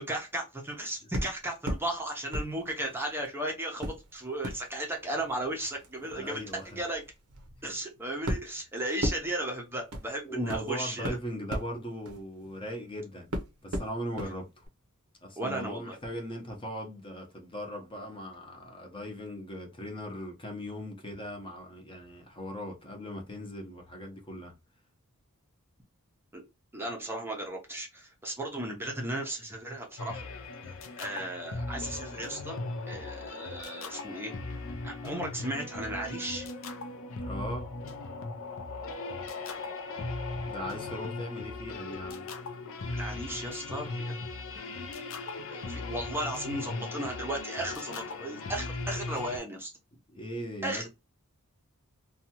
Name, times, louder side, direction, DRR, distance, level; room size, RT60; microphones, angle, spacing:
voice 1, 0.0-6.4 6.7-7.0 7.6-11.2 15.4-16.0 26.3-26.4 26.7-30.3 31.0-32.6 32.9-34.3 34.8-36.5 42.9-44.1 45.5-49.7 50.6-50.9, right 1 dB, 10° right, 0.6 m, -35 dB
sound 1, 1.1-1.9 2.3-3.3 3.8-12.9 13.3-14.3 14.6-14.7, equal, 90° right, 0.7 m, -37 dB
voice 2, 6.1-6.8 10.2-13.3 13.6-14.6 15.2-24.5 37.2-37.7 40.4-42.3 50.1-50.9, equal, 25° left, 0.7 m, -39 dB
sound 2, 30.0-49.4, left 3 dB, 65° left, 0.5 m, -38 dB
2.7 x 2.3 x 2.8 m
head